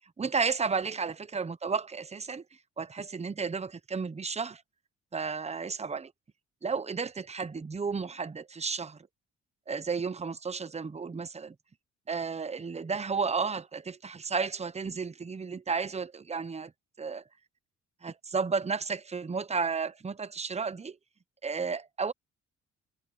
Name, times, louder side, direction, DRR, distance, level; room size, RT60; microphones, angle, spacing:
voice 1, 0.2-2.4 2.8-4.6 5.1-6.1 6.6-9.0 9.7-11.5 12.1-16.7 17.0-17.2 18.0-21.0 21.4-22.1, right 5 dB, 20° right, 0.9 m, -32 dB
cardioid pair, 90°, 30 cm